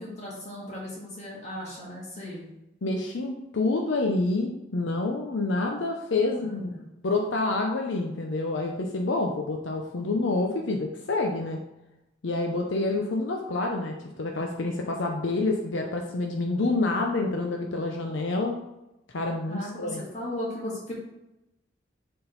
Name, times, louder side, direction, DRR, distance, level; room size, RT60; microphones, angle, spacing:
voice 1, 0.0-2.5 6.4-6.9 19.4-20.9, left 1 dB, 35° left, -4 dB, 2.0 m, -37 dB
voice 2, 2.8-6.7 7.0-11.6 12.2-18.6 19.1-20.0, left 2 dB, 80° left, 2 dB, 0.6 m, -28 dB
6.9 x 3.8 x 3.9 m, 0.92 s
head